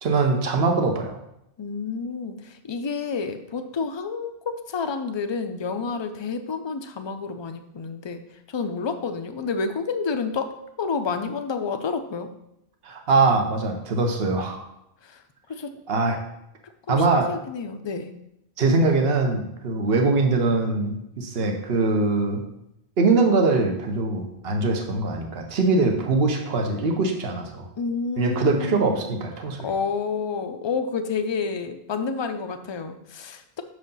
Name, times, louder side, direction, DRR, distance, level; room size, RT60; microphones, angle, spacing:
voice 1, 0.0-1.2 12.8-14.6 15.9-16.2 16.9-17.3 18.6-22.4 23.0-27.6 28.2-29.7, right 3 dB, 65° right, 3 dB, 1.2 m, -22 dB
voice 2, 1.6-8.2 8.5-10.5 10.8-12.3 15.0-15.2 15.5-15.7 16.6-18.1 27.8-29.1 29.4-33.6, left 5 dB, 35° left, 7 dB, 0.5 m, -29 dB
6.5 x 4.9 x 5.5 m, 0.81 s
omnidirectional pair, 1.1 m